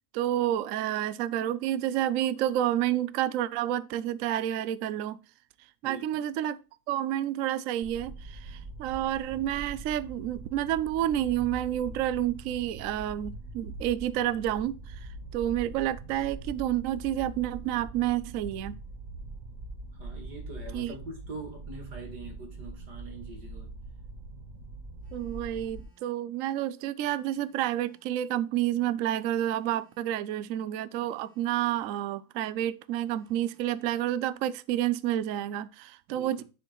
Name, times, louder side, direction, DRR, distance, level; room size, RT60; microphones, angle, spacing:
voice 1, 0.1-5.2 5.8-6.6 6.9-18.7 20.7-20.9 25.1-36.4, right 12 dB, 70° right, 0.8 m, -29 dB
voice 2, 5.8-6.3 19.9-23.8 36.1-36.4, right 2 dB, 90° right, 2.7 m, -44 dB
sound 1, 7.8-25.8, right 2 dB, 45° right, 1.5 m, -43 dB
Telephone, 25.0-26.1 27.0-28.2 29.0-30.2 31.0-32.1 33.0-34.1, equal, 5° right, 3.3 m, -66 dB
10.0 x 5.0 x 3.0 m
omnidirectional pair, 1.7 m